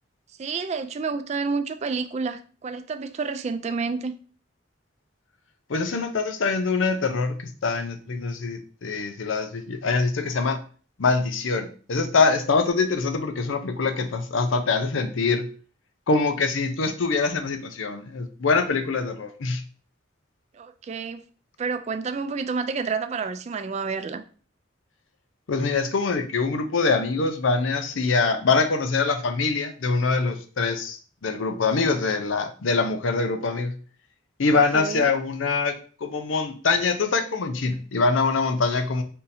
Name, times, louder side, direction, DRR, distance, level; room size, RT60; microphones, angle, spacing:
voice 1, 0.4-4.1 20.5-21.2 21.6-24.2 34.7-35.1, right 4 dB, 35° right, 0.3 m, -29 dB
voice 2, 5.7-10.6 11.0-15.5 16.1-19.6 25.5-33.7 34.4-35.8 36.0-39.0, left 4 dB, 85° left, 0.6 m, -24 dB
3.6 x 2.7 x 4.1 m
head